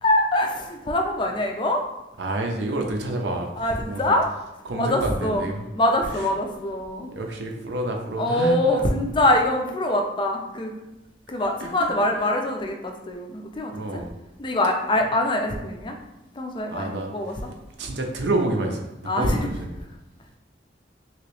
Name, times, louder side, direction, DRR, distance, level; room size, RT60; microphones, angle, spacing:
voice 1, 0.0-1.8 3.6-4.3 4.7-5.4 5.7-7.1 8.2-10.7 11.3-14.0 14.4-16.0 16.3-17.3 19.0-19.5, left 1 dB, 25° left, 3 dB, 0.4 m, -24 dB
voice 2, 2.2-4.2 4.6-5.7 6.2-6.3 7.2-8.9 11.6-12.1 13.7-14.1 16.7-17.1 17.8-19.7, right 2 dB, 75° right, 2 dB, 0.5 m, -28 dB
3.0 x 2.9 x 3.0 m, 0.94 s
head